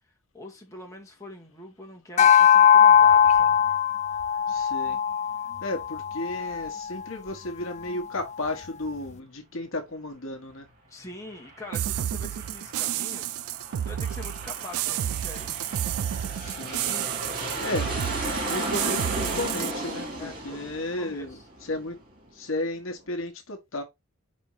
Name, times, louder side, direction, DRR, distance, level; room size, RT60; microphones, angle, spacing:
voice 1, 0.3-3.6 10.9-13.3 13.8-15.5 16.9-17.7 20.2-20.7 21.0-21.5, left 2 dB, 15° left, 1.6 m, -44 dB
sound 1, 2.2-6.8, left 8 dB, 30° left, 0.3 m, -19 dB
voice 2, 4.5-5.0 5.6-10.7 16.4-16.9 17.6-17.9 18.5-22.0 22.3-23.8, left 2 dB, 60° left, 1.1 m, -33 dB
Aircraft, 11.1-22.3, right 2 dB, 40° right, 2.5 m, -35 dB
sound 2, 11.7-19.7, right 11 dB, 75° right, 0.3 m, -31 dB
5.2 x 4.3 x 4.7 m
head